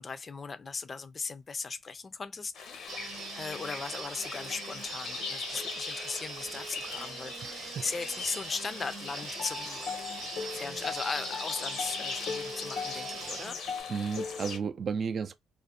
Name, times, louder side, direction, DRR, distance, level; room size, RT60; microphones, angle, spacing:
voice 1, 0.0-9.9 10.5-13.6, left 4 dB, 35° left, 0.4 m, -38 dB
sound 1, 2.5-14.6, left 5 dB, 75° left, 0.6 m, -39 dB
sound 2, 2.9-13.5, right 5 dB, 80° right, 0.8 m, -42 dB
Water tap faucet / Sink (filling or washing), 7.3-13.8, right 2 dB, 20° right, 0.7 m, -56 dB
voice 2, 7.4-7.8 13.9-15.3, right 6 dB, 50° right, 0.4 m, -33 dB
2.4 x 2.1 x 2.6 m
cardioid pair, 90°, 0 cm